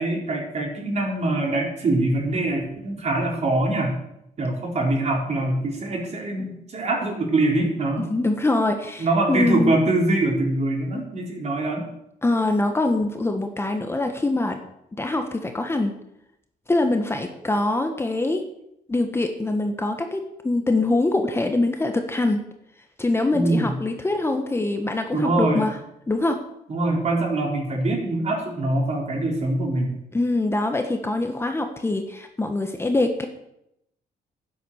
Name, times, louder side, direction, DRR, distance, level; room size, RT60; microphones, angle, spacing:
voice 1, 0.0-4.0 4.4-8.1 9.0-11.9 23.3-23.8 25.1-25.7 26.7-30.0, right 2 dB, 45° right, 0 dB, 4.3 m, -23 dB
voice 2, 8.1-9.7 12.2-14.6 15.0-15.9 16.7-18.4 18.9-22.4 23.0-25.7 26.1-26.4 30.1-33.3, left 2 dB, 15° left, 5 dB, 1.2 m, -24 dB
11.5 x 9.4 x 7.0 m, 0.80 s
cardioid pair, 120°, 16 cm